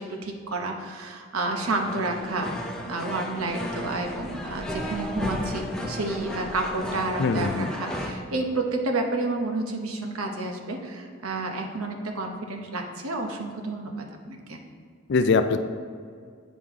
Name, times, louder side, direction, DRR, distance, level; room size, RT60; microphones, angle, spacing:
voice 1, 0.0-14.6, right 2 dB, 85° right, 3 dB, 0.9 m, -30 dB
sound 1, 1.6-8.1, equal, 5° left, 0.5 m, -34 dB
voice 2, 7.2-7.7 15.1-15.6, left 4 dB, 55° left, 10 dB, 0.4 m, -22 dB
8.5 x 5.1 x 3.6 m, 2.1 s
head